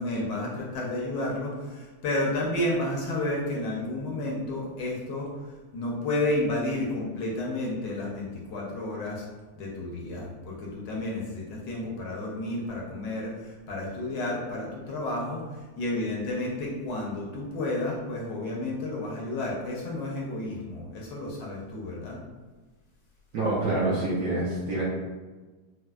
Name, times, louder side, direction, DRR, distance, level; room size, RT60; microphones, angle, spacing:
voice 1, 0.0-5.3 5.7-9.3 9.5-22.2, left 1 dB, 70° left, -3 dB, 1.2 m, -31 dB
voice 2, 23.3-24.8, right 2 dB, 65° right, -8 dB, 1.0 m, -26 dB
4.2 x 2.0 x 2.2 m, 1.3 s
omnidirectional pair, 2.2 m